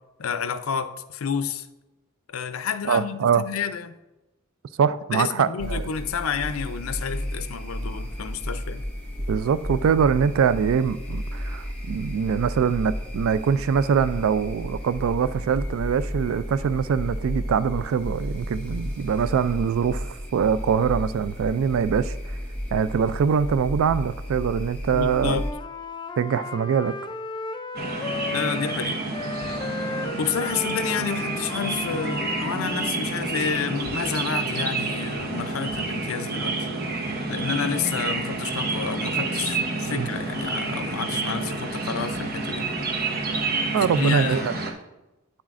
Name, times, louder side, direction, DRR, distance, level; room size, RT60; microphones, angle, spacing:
voice 1, 0.2-1.7 2.3-4.0 5.1-8.8 24.9-25.5 28.3-29.0 30.2-36.7 37.3-42.7 43.8-44.5, left 7 dB, 80° left, 0.5 m, -30 dB
voice 2, 2.9-3.4 4.8-5.9 9.3-22.2 22.7-25.4 26.2-26.9 39.9-40.1 43.7-44.5, right 7 dB, 70° right, 0.3 m, -23 dB
sound 1, 5.6-25.5, equal, 5° left, 1.5 m, -33 dB
Wind instrument woodwind instrument, 25.1-28.8 29.1-33.0, left 3 dB, 20° left, 0.4 m, -34 dB
sound 2, 27.7-44.7, right 3 dB, 50° right, 0.8 m, -29 dB
9.5 x 7.3 x 2.5 m
head